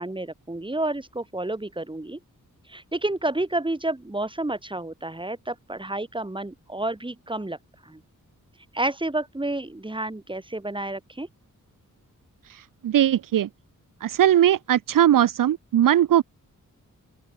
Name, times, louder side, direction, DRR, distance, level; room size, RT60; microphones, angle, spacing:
voice 1, 0.0-2.2 2.7-7.6 7.8-8.0 8.7-11.3, right 2 dB, 15° right, 5.4 m, -30 dB
voice 2, 12.5-13.5 14.0-16.2, right 11 dB, 80° right, 0.7 m, -20 dB
open air
wide cardioid pair, 110°, 33 cm